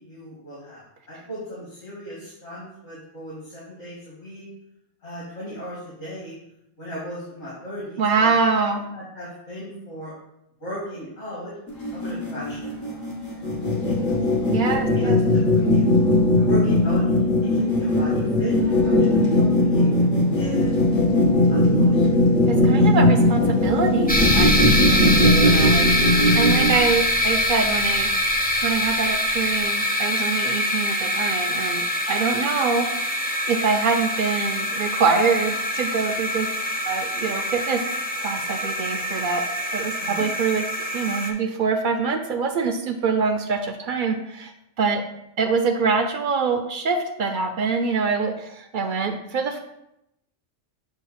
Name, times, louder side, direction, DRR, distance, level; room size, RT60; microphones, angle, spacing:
voice 1, 0.0-4.5 5.0-6.3 6.8-8.3 8.9-10.1 10.6-11.6 11.9-13.0 13.7-14.1 14.9-15.9 16.4-17.0 17.4-19.9 20.4-20.7 21.3-22.5 25.2-25.6 40.0-40.3, equal, 65° left, -8 dB, 2.0 m, -37 dB
voice 2, 8.0-8.8 14.5-15.2 22.5-28.1 28.6-32.9 33.5-36.5 36.9-37.8 38.2-39.4 39.7-40.6 40.9-44.5 44.8-45.0 45.4-49.6, right 4 dB, 60° right, 6 dB, 0.5 m, -24 dB
sound 1, 11.7-26.7, left 1 dB, 80° left, 1.6 m, -19 dB
sound 2, 24.1-41.3, equal, 10° left, 0.4 m, -24 dB
6.9 x 2.5 x 5.6 m, 0.84 s
omnidirectional pair, 1.3 m